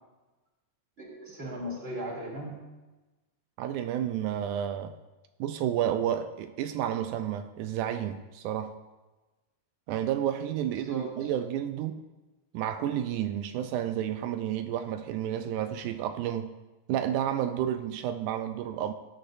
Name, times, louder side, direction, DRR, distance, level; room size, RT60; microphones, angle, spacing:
voice 1, 1.0-2.6 10.6-11.3, equal, 20° right, -4 dB, 2.9 m, -38 dB
voice 2, 3.6-5.0 5.4-8.8 9.9-12.0 12.5-16.6 16.9-18.9, right 10 dB, 85° right, 8 dB, 2.0 m, -31 dB
16.5 x 10.0 x 2.6 m, 1.1 s
omnidirectional pair, 3.5 m